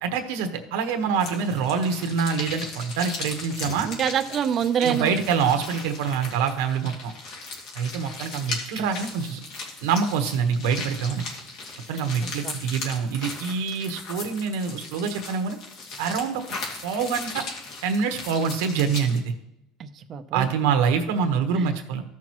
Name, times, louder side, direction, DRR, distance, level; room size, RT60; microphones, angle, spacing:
voice 1, 0.0-3.9 4.8-7.1 7.7-9.4 9.8-11.2 11.9-15.6 16.0-16.4 16.8-17.4 17.8-19.3 20.3-22.0, right 6 dB, 85° right, 6 dB, 1.2 m, -25 dB
sound 1, 1.2-19.2, left 3 dB, 60° left, 2.3 m, -37 dB
voice 2, 3.8-5.1 12.2-12.6 19.8-20.5 21.6-21.7, right 8 dB, 35° right, 8 dB, 0.6 m, -26 dB
14.5 x 6.0 x 3.0 m, 0.84 s
cardioid pair, 135°, 0 cm